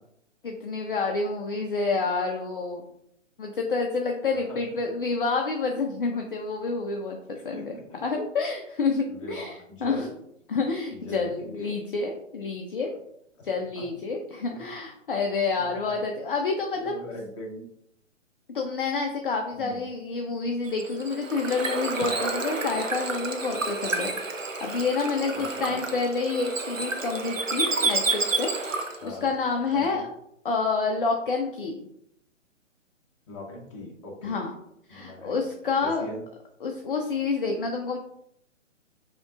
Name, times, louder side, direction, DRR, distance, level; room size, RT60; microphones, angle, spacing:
voice 1, 0.4-2.8 3.4-7.7 8.0-10.1 10.5-12.9 13.4-17.0 18.5-30.0 30.4-31.8 34.2-34.5 34.9-36.1 36.6-38.0, left 4 dB, 45° left, 2 dB, 0.5 m, -28 dB
voice 2, 4.3-4.6 7.3-8.0 9.1-10.1 10.9-11.7 13.4-13.5 13.7-13.8 14.5-14.6 15.5-16.0 16.7-17.6 19.5-19.9 25.3-25.9 29.0-29.3 29.7-30.0 33.3-34.5 34.9-35.5 35.8-36.2, left 1 dB, 25° left, -1 dB, 0.9 m, -41 dB
Bird / Water, 20.7-29.1, right 3 dB, 85° right, 0.8 m, -30 dB
5.1 x 2.8 x 2.4 m, 0.75 s
figure-of-eight pair, 130°, 38 cm